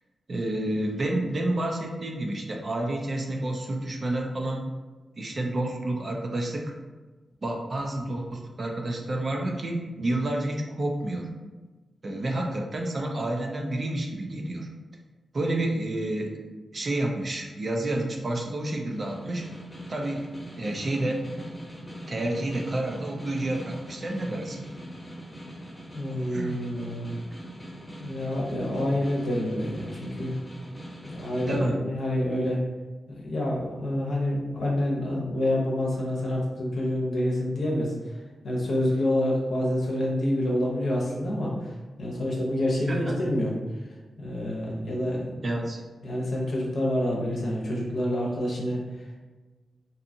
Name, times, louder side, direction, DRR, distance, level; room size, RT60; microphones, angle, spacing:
voice 1, 0.3-4.7 5.2-6.7 7.4-11.3 12.0-14.7 15.3-16.3 16.7-19.4 19.9-20.3 20.5-21.2 22.1-24.7 26.1-26.5 31.5-31.8 42.9-43.1 45.4-45.8, right 1 dB, 50° right, 1 dB, 0.5 m, -29 dB
Snare drum, 18.9-31.6, equal, 25° left, 1.0 m, -42 dB
voice 2, 25.9-27.1 27.9-30.3 31.1-32.6 33.2-38.2 38.4-43.5 44.2-45.5 46.0-49.2, left 1 dB, 70° left, -3 dB, 0.7 m, -28 dB
2.7 x 2.4 x 2.6 m, 1.3 s
supercardioid pair, 45°, 0 cm